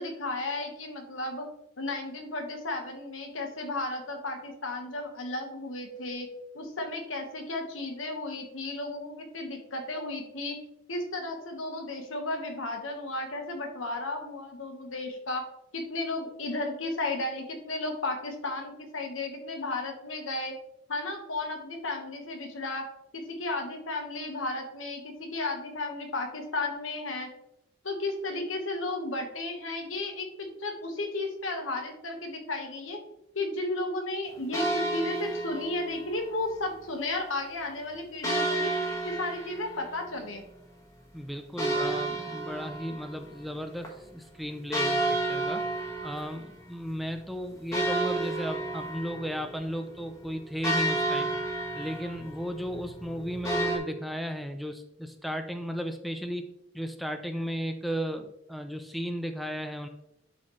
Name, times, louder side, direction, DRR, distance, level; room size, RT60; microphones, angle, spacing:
voice 1, 0.0-1.5 1.8-6.3 6.5-10.6 10.9-15.4 15.7-20.5 20.9-22.9 23.1-27.3 27.8-33.0 33.3-38.7 39.0-40.4, left 2 dB, 80° left, 3 dB, 1.4 m, -34 dB
sound 1, 34.5-36.2 38.2-40.7 41.6-43.6 43.8-43.9 44.7-46.7 47.1-47.2 47.7-53.8, right 2 dB, 15° left, 1.2 m, -31 dB
voice 2, 41.1-45.7 46.0-51.3 51.8-56.5 56.7-59.9, equal, ahead, 6 dB, 0.4 m, -35 dB
11.0 x 4.2 x 3.2 m, 0.82 s
head